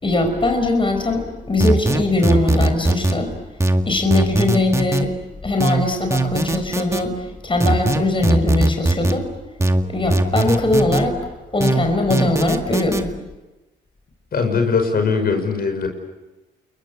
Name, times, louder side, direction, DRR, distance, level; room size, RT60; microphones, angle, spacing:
voice 1, 0.0-3.3 3.8-5.1 5.4-9.3 9.9-13.1, left 2 dB, 25° left, 5 dB, 5.2 m, -21 dB
sound 1, 1.6-3.2 3.6-5.0 5.6-7.0 7.6-9.2 9.6-11.0 11.6-13.0, right 2 dB, 15° right, 2.0 m, -19 dB
voice 2, 14.3-15.9, left 5 dB, 50° left, 5 dB, 5.5 m, -20 dB
29.5 x 22.5 x 8.4 m, 1.1 s
cardioid pair, 90°, 20 cm